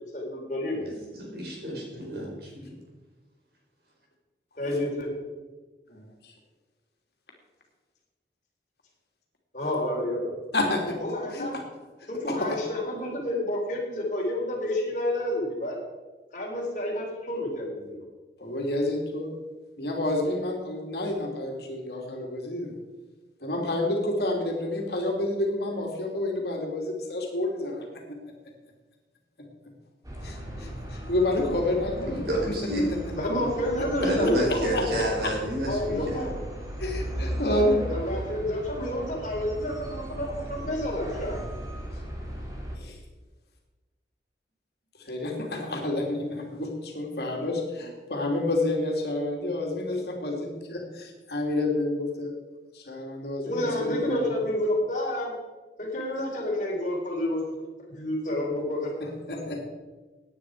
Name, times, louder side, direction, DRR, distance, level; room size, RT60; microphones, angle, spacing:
voice 1, 0.1-0.9 4.6-5.3 9.5-10.4 11.0-11.5 12.1-15.8 16.3-18.0 33.2-35.1 35.7-36.3 37.5-37.6 37.9-41.4 53.5-55.3 55.8-57.5 57.9-58.9, left 1 dB, 45° left, -1 dB, 4.0 m, -29 dB
voice 2, 0.8-2.8 32.0-32.8 34.0-36.3, right 1 dB, 60° right, -2 dB, 5.0 m, -30 dB
voice 3, 5.9-6.3 10.5-11.6 12.3-12.6 18.4-19.3 19.8-22.7 23.4-28.2 30.2-32.5 32.9-33.0 33.8-34.8 35.2-35.3 36.8-37.9 41.9-42.0 42.8-43.0 45.0-52.3 52.7-54.3 59.0-59.6, left 1 dB, 65° left, 1 dB, 2.9 m, -29 dB
sound 1, 30.0-42.8, equal, 20° right, 2.5 m, -36 dB
17.5 x 9.8 x 4.9 m, 1.3 s
head